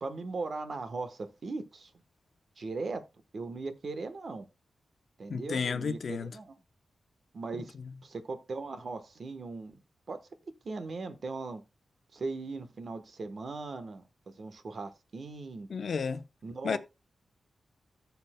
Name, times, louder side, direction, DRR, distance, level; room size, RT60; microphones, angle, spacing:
voice 1, 0.0-1.9 2.6-3.0 3.3-4.5 5.2-6.5 7.3-7.7 8.0-9.8 10.1-10.2 10.6-11.6 12.1-14.0 14.4-15.7 16.4-16.8, right 3 dB, 50° right, 1.1 m, -38 dB
voice 2, 5.3-6.4 7.8-7.9 15.7-16.2 16.6-16.8, left 5 dB, 60° left, 0.7 m, -32 dB
14.5 x 6.9 x 2.2 m
wide cardioid pair, 120°, 0 cm